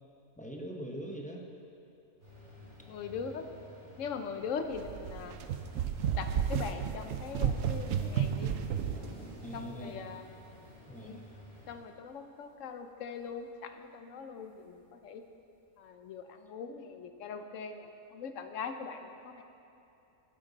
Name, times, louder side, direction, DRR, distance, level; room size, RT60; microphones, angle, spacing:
voice 1, 0.4-1.5 9.4-10.1 10.9-11.3, equal, 5° left, -1 dB, 0.7 m, -42 dB
sound 1, 2.2-11.7, equal, 55° right, 3.4 m, -53 dB
voice 2, 2.9-3.5 4.0-5.4 6.1-8.5 9.5-10.2 11.0-11.2 11.7-15.2 15.8-19.4, left 6 dB, 70° left, 7 dB, 1.0 m, -41 dB
sound 2, 4.7-9.1, right 8 dB, 75° right, 1.0 m, -32 dB
sound 3, 8.4-12.2 12.5-12.6 13.0-13.5 14.6-14.7 15.7-15.8, right 2 dB, 40° right, 2.9 m, -51 dB
12.0 x 9.7 x 4.0 m, 2.8 s
omnidirectional pair, 1.4 m